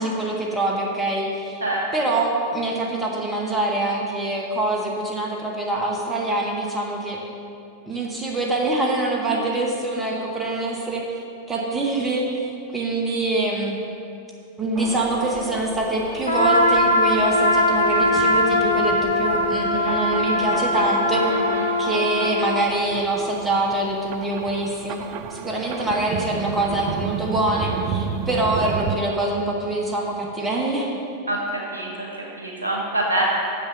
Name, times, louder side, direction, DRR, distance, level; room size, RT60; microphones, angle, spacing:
voice 1, 0.0-1.6 1.9-7.2 7.9-11.2 11.5-13.8 14.6-21.3 21.8-25.0 25.3-30.9, right 2 dB, 15° right, -2 dB, 1.2 m, -25 dB
sound 1, 14.7-29.0, right 7 dB, 40° right, 0.4 m, -33 dB
Trumpet, 16.3-22.7, left 1 dB, 85° left, 0.7 m, -21 dB
voice 2, 21.2-21.7 31.3-33.2, right 1 dB, 75° right, -3 dB, 2.0 m, -26 dB
7.1 x 6.6 x 7.5 m, 2.7 s
figure-of-eight pair, 90°, 0 cm